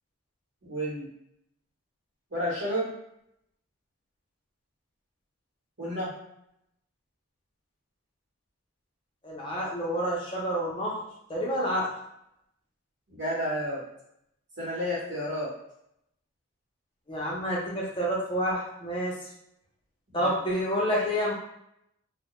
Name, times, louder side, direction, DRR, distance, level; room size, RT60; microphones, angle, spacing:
voice 1, 0.6-1.1 2.3-2.9 5.8-6.1 13.1-13.8 14.6-15.5 20.2-20.3, equal, 60° right, -11 dB, 0.9 m, -31 dB
voice 2, 9.2-11.0 11.3-11.9 17.1-19.2 20.1-21.3, equal, 25° left, -4 dB, 0.6 m, -28 dB
2.2 x 2.1 x 2.9 m, 0.78 s
head